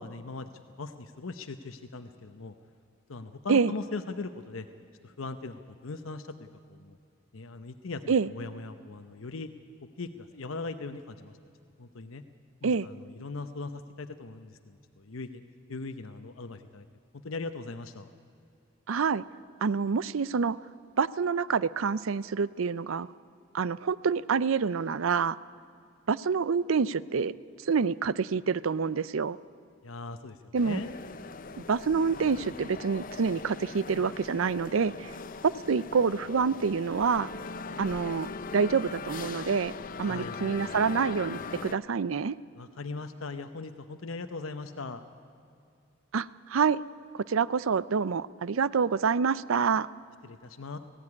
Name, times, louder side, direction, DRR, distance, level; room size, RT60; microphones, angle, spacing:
voice 1, 0.0-2.5 3.1-4.7 5.0-7.0 7.3-9.5 10.0-11.4 11.8-12.2 12.6-15.4 15.7-16.9 17.1-18.1 29.8-31.0 40.0-40.4 42.6-45.0 50.2-50.8, left 3 dB, 85° left, 8 dB, 0.9 m, -39 dB
voice 2, 18.9-19.2 19.6-20.6 21.0-23.1 23.5-25.4 26.1-27.3 27.6-29.4 30.5-30.8 31.7-35.1 35.4-37.3 37.8-39.7 40.0-42.4 46.1-46.8 47.1-49.9, right 5 dB, 85° right, 18 dB, 0.5 m, -27 dB
sound 1, 30.5-41.8, left 4 dB, 40° left, 0.6 m, -40 dB
19.5 x 16.0 x 9.7 m, 2.5 s
head